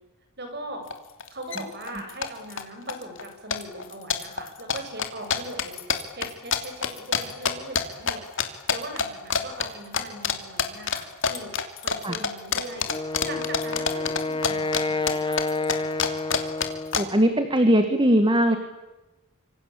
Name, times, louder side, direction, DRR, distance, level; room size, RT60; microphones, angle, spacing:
voice 1, 0.4-0.9 1.3-5.8 6.1-8.2 8.7-11.5 11.8-15.4, right 1 dB, 50° right, 4 dB, 7.4 m, -39 dB
sound 1, 0.9-1.0 1.2-1.6 1.9-2.6 2.9-3.3 3.5-8.1 8.4-9.1 9.3-9.7 9.9-10.3 10.6-14.8 15.1-17.0, left 6 dB, 60° left, 2.9 m, -25 dB
Wind instrument woodwind instrument, 12.9-17.1, left 3 dB, 20° left, 1.6 m, -29 dB
voice 2, 17.0-18.6, equal, 20° right, 8 dB, 1.9 m, -20 dB
26.5 x 25.5 x 8.6 m, 1.1 s
head